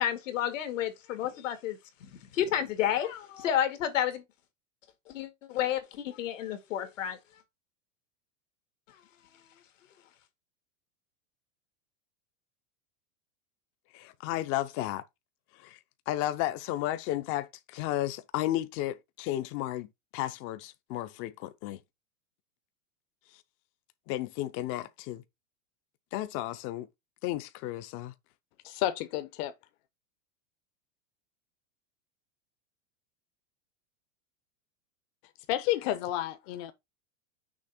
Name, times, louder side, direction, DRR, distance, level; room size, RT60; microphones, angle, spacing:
voice 1, 0.0-4.2 5.1-7.2, left 10 dB, 80° left, 2.1 m, -31 dB
voice 2, 13.9-15.0 15.6-15.8 16.1-19.9 20.1-21.8 24.1-25.2 26.1-26.9 27.2-28.1, left 14 dB, 35° left, 0.5 m, -33 dB
voice 3, 28.6-29.5 35.5-36.7, left 13 dB, 50° left, 0.9 m, -30 dB
6.3 x 3.2 x 5.7 m
supercardioid pair, 135°, 38 cm